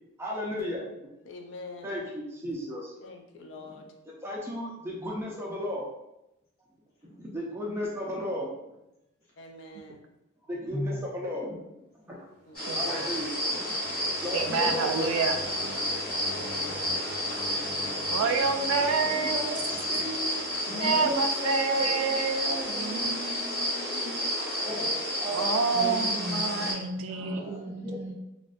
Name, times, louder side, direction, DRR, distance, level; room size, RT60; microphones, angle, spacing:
voice 1, 0.2-0.9 1.8-2.9 4.2-5.9 7.0-8.5 10.5-11.7 12.1-12.2 12.7-13.8 14.2-15.1 16.2-16.5 17.7-17.9 19.1-20.3 20.9-22.2 24.3-26.2 27.1-28.1, equal, 10° right, -4 dB, 0.4 m, -35 dB
voice 2, 1.3-1.9 3.0-3.8 9.4-10.0 12.5-12.9 25.6-25.7, left 3 dB, 60° left, 3 dB, 0.4 m, -45 dB
voice 3, 10.7-11.0 20.7-24.3 25.7-28.1, left 1 dB, 90° left, -6 dB, 1.0 m, -38 dB
sound 1, 12.5-26.7, equal, 25° left, 1.1 m, -31 dB
sound 2, 12.5-21.2, left 1 dB, 50° right, 0.6 m, -45 dB
voice 4, 12.7-13.1 14.3-15.4 18.1-19.4 20.3-20.4 20.8-23.5 25.3-27.8, right 5 dB, 80° right, 6 dB, 0.3 m, -28 dB
2.4 x 2.1 x 2.4 m, 0.89 s
head